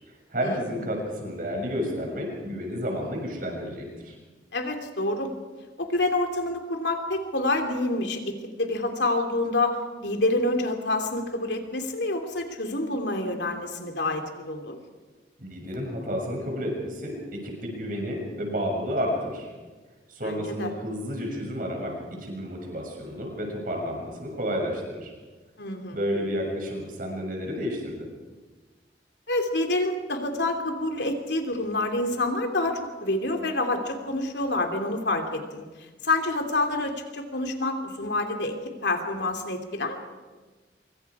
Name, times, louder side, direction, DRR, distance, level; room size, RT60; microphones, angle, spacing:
voice 1, 0.3-4.2 15.4-19.5 20.1-25.1 25.9-28.1, equal, 50° right, 1 dB, 6.6 m, -31 dB
voice 2, 4.5-5.3 5.8-14.8 20.2-20.7 25.6-26.0 29.3-35.6 36.0-38.6 38.8-40.0, left 2 dB, 80° left, 4 dB, 2.8 m, -27 dB
25.0 x 24.0 x 4.9 m, 1.3 s
head